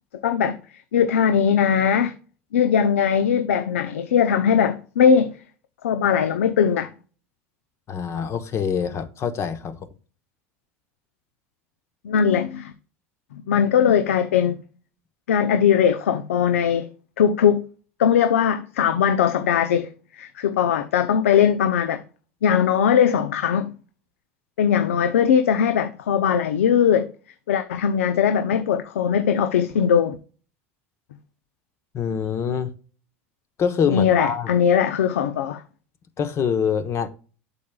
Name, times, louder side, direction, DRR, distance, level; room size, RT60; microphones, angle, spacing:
voice 1, 0.2-0.6 0.9-2.1 2.5-5.3 5.8-6.9 12.0-12.7 13.3-14.6 15.3-16.9 17.2-17.6 18.0-22.0 22.4-23.7 24.6-27.1 27.5-30.2 33.9-35.6, left 8 dB, 85° left, 0.6 m, -20 dB
voice 2, 7.9-9.8 31.9-32.7 33.6-34.5 36.2-37.1, left 7 dB, 40° left, 1.1 m, -24 dB
8.3 x 6.9 x 2.3 m
hypercardioid pair, 85°, 7 cm